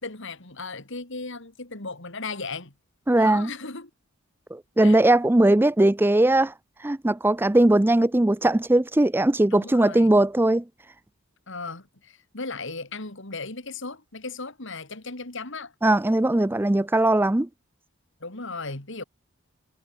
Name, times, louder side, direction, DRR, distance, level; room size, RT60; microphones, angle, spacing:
voice 1, 0.0-2.7 3.2-3.9 4.8-5.0 9.5-10.1 11.5-15.7 18.2-19.0, left 3 dB, 55° left, 3.0 m, -36 dB
voice 2, 3.1-3.5 4.5-6.5 6.8-10.6 15.8-17.5, right 1 dB, 10° right, 0.4 m, -20 dB
head